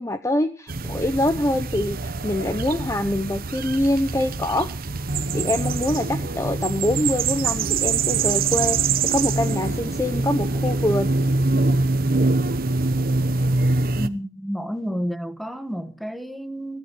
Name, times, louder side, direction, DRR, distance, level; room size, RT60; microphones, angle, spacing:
voice 1, 0.0-4.7 5.3-11.1, left 1 dB, 15° left, 0.7 m, -24 dB
sound 1, 0.7-14.1, right 3 dB, 50° right, 0.9 m, -24 dB
sound 2, 5.1-11.7, left 1 dB, 40° left, 4.8 m, -48 dB
voice 2, 14.0-16.8, equal, ahead, 1.4 m, -30 dB
23.0 x 15.5 x 3.1 m
head